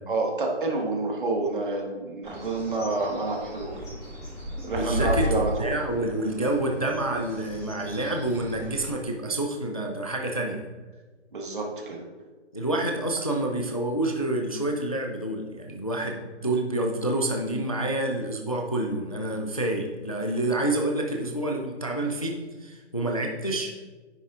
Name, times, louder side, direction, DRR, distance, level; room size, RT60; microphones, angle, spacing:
voice 1, 0.1-3.8 4.6-5.7 11.3-12.0, right 3 dB, 45° right, 0 dB, 1.6 m, -28 dB
Bird, 2.2-8.9, left 1 dB, 15° left, 2.4 m, -34 dB
voice 2, 4.8-10.6 12.5-23.7, right 1 dB, 30° left, 1 dB, 0.5 m, -28 dB
9.7 x 7.7 x 2.5 m, 1.3 s
hypercardioid pair, 180°, 36 cm